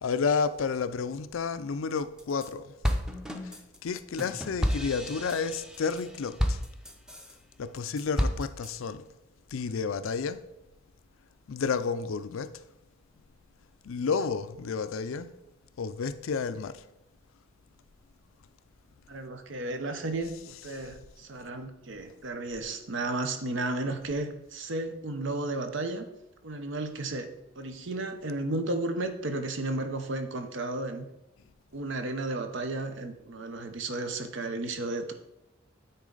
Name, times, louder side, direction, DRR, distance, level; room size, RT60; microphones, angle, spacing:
voice 1, 0.0-2.7 3.4-6.6 7.6-9.1 9.5-10.4 11.5-12.6 13.8-15.3 15.8-16.8 20.4-20.9, left 5 dB, 85° left, 0.4 m, -31 dB
sound 1, 2.0-2.5 2.8-7.3 7.8-8.7, equal, 5° right, 0.6 m, -31 dB
voice 2, 19.1-26.0 26.4-27.3 27.6-31.1 31.7-35.1, right 2 dB, 65° right, 0.8 m, -33 dB
9.4 x 4.2 x 3.9 m
head